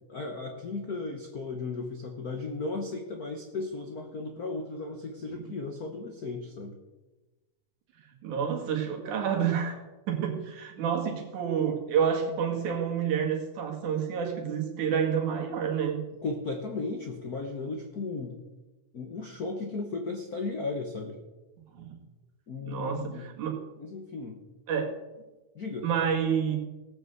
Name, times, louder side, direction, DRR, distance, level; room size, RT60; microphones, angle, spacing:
voice 1, 0.1-6.8 16.2-18.4 18.9-21.2 22.5-23.3 23.8-24.4 25.5-25.9, left 3 dB, 80° left, 4 dB, 0.8 m, -35 dB
voice 2, 8.2-9.8 10.1-16.0 21.8-22.0 22.6-23.6 24.7-24.9 25.8-26.6, right 7 dB, 80° right, 2 dB, 3.3 m, -29 dB
17.5 x 6.7 x 7.7 m, 1.1 s
omnidirectional pair, 3.5 m